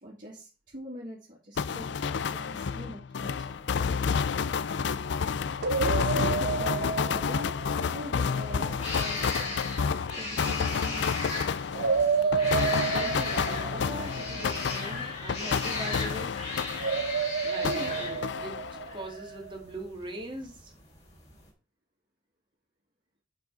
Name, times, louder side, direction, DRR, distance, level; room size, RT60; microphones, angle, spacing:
voice 1, 0.0-2.0 2.3-3.6 5.8-7.6 7.9-9.6 10.2-11.1 17.6-17.9, equal, 45° right, -6 dB, 2.8 m, -42 dB
sound 1, 1.6-17.3 17.6-19.0, left 6 dB, 65° left, 0.4 m, -30 dB
sound 2, 3.4-21.5, left 2 dB, 35° left, 3.5 m, -39 dB
sound 3, 5.6-8.6 11.7-15.0 16.7-19.5, right 5 dB, 60° right, 1.0 m, -30 dB
voice 2, 12.0-16.4 17.4-20.7, right 1 dB, 25° right, 1 dB, 2.5 m, -41 dB
7.2 x 6.1 x 5.7 m, 0.33 s
head